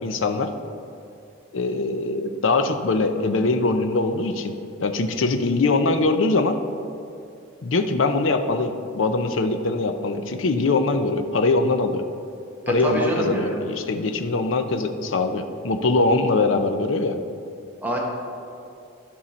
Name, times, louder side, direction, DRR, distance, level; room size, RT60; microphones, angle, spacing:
voice 1, 0.0-0.5 1.5-6.6 7.6-12.0 12.7-17.2, left 3 dB, 70° left, 7 dB, 0.6 m, -22 dB
voice 2, 12.7-13.6 17.8-18.0, equal, 10° right, -3 dB, 1.2 m, -25 dB
12.5 x 5.5 x 4.2 m, 2.5 s
head